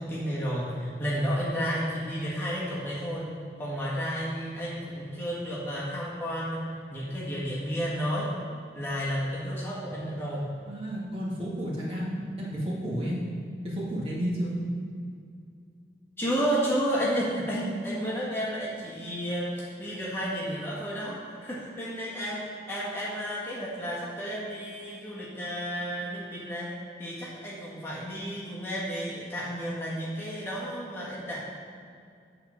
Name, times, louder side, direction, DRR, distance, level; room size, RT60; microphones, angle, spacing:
voice 1, 0.0-3.3 3.6-6.6 6.9-8.3 8.7-10.5 16.2-26.7 27.0-31.4, equal, 15° left, -7 dB, 1.4 m, -32 dB
voice 2, 10.6-13.2 13.6-14.6, equal, 30° right, -6 dB, 1.8 m, -31 dB
8.8 x 4.4 x 6.0 m, 2.3 s
head